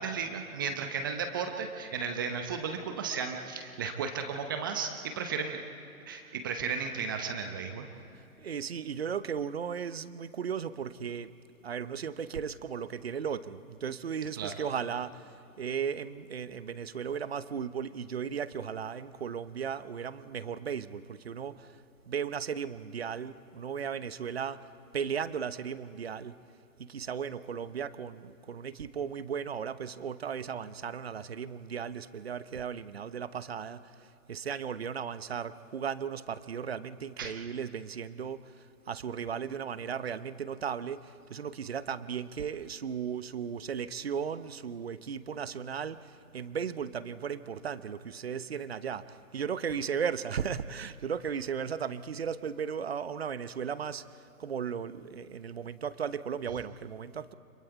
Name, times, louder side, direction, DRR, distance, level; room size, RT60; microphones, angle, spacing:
voice 1, 0.0-5.6 6.1-7.8 14.4-14.5 37.2-37.4, right 6 dB, 15° right, 5 dB, 0.8 m, -34 dB
voice 2, 8.4-11.3 11.6-21.8 22.1-24.7 24.9-26.4 26.8-57.3, right 7 dB, 45° right, 15 dB, 0.9 m, -36 dB
30.0 x 27.0 x 4.6 m, 2.8 s
figure-of-eight pair, 145°, 43 cm